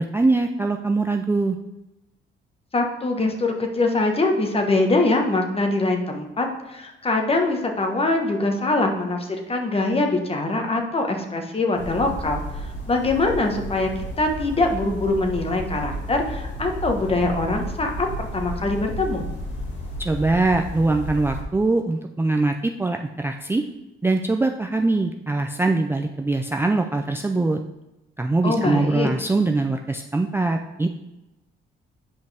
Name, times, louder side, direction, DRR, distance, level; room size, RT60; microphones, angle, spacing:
voice 1, 0.0-1.6 20.0-23.6 24.0-27.6 28.2-30.9, right 2 dB, 10° right, 3 dB, 0.4 m, -22 dB
voice 2, 2.7-13.9 14.2-18.1 18.3-19.2 28.4-29.1, left 2 dB, 30° left, 3 dB, 1.2 m, -23 dB
sound 1, 11.8-21.4, equal, 65° left, 1.9 m, -33 dB
8.3 x 5.2 x 3.4 m, 0.96 s
cardioid pair, 90°, 20 cm